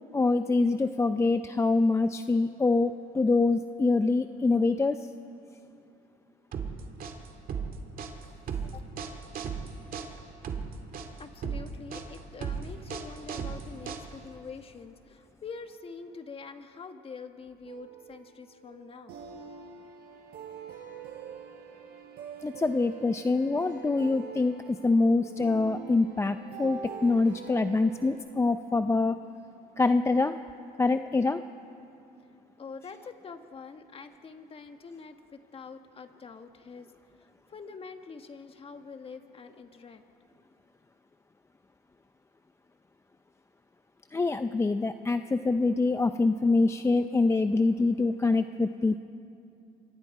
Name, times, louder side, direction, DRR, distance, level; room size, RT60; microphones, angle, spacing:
voice 1, 0.1-5.0 22.4-29.2 29.8-30.3 30.8-31.4 44.1-49.0, left 3 dB, 15° left, 9 dB, 0.5 m, -25 dB
sound 1, 6.5-14.4, right 6 dB, 55° right, 2.3 m, -36 dB
voice 2, 11.2-19.2 32.6-36.9 37.5-40.0, left 5 dB, 35° left, 7 dB, 1.5 m, -45 dB
sound 2, 17.6-28.1, right 7 dB, 75° right, 4.9 m, -44 dB
27.5 x 24.5 x 4.8 m, 2.7 s
cardioid pair, 110°, 17 cm